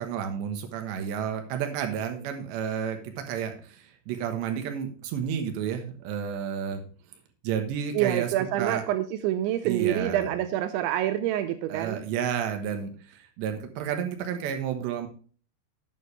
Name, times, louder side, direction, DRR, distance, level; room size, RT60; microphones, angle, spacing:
voice 1, 0.0-6.8 7.4-8.8 9.6-10.3 11.7-15.1, right 8 dB, 70° right, 6 dB, 3.1 m, -31 dB
voice 2, 7.9-12.0, right 12 dB, 85° right, 10 dB, 2.7 m, -27 dB
9.3 x 8.9 x 3.2 m, 0.40 s
omnidirectional pair, 5.8 m